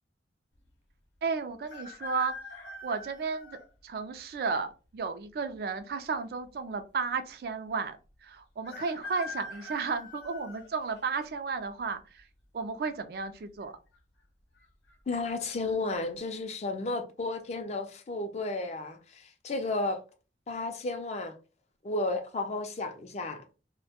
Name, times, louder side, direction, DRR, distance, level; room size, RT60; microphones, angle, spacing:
voice 1, 1.2-2.3 2.8-3.6 3.8-8.0 8.2-12.2 12.5-13.7, right 5 dB, 60° right, 0.3 m, -33 dB
sound 1, 1.6-3.7 4.3-4.4 5.5-6.2 6.5-6.6 6.7-6.8 8.6-11.3 11.8-12.2 13.3-13.7 13.9-14.0 14.6-14.9 15.4-15.6, left 2 dB, 85° left, 0.7 m, -43 dB
voice 2, 15.1-20.0 20.5-21.3 21.8-23.4, left 2 dB, 40° left, 0.4 m, -33 dB
2.1 x 2.1 x 2.8 m
head